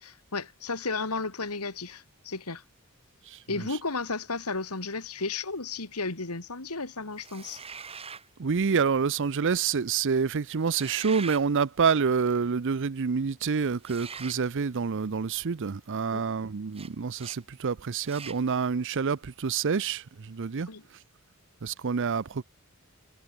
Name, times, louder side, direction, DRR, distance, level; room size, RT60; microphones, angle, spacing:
voice 1, 0.0-2.6 3.5-7.6 16.1-16.2 20.7-20.8, left 3 dB, 85° left, 2.7 m, -33 dB
voice 2, 3.3-3.7 8.4-20.7 21.6-22.4, right 5 dB, 55° right, 0.6 m, -27 dB
sound 1, 7.2-8.3 10.6-11.5 13.8-14.4 16.7-16.9 17.2-17.4 18.0-18.4, right 6 dB, 25° right, 1.8 m, -42 dB
head